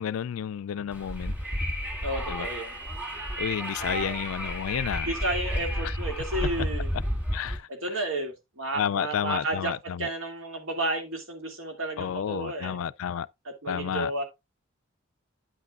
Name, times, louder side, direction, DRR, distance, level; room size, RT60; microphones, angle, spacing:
voice 1, 0.0-1.3 2.3-2.5 3.4-5.1 7.3-7.7 8.8-10.1 12.0-13.3 13.7-14.1, left 8 dB, 80° left, 0.3 m, -31 dB
Wind, 0.9-7.6, equal, 10° right, 2.0 m, -32 dB
voice 2, 2.0-2.8 3.8-4.2 5.0-6.9 7.7-12.8 13.4-14.2, right 2 dB, 75° right, 2.4 m, -32 dB
9.3 x 8.2 x 2.4 m
head